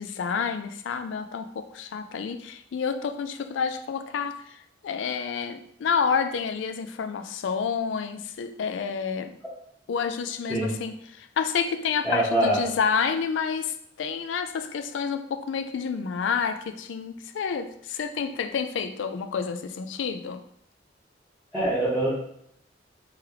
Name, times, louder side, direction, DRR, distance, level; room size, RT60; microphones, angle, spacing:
voice 1, 0.0-9.3 9.9-20.4, left 6 dB, 80° left, 8 dB, 0.4 m, -29 dB
voice 2, 12.0-12.7 21.5-22.2, right 1 dB, ahead, -13 dB, 1.0 m, -24 dB
3.3 x 3.1 x 3.5 m, 0.71 s
head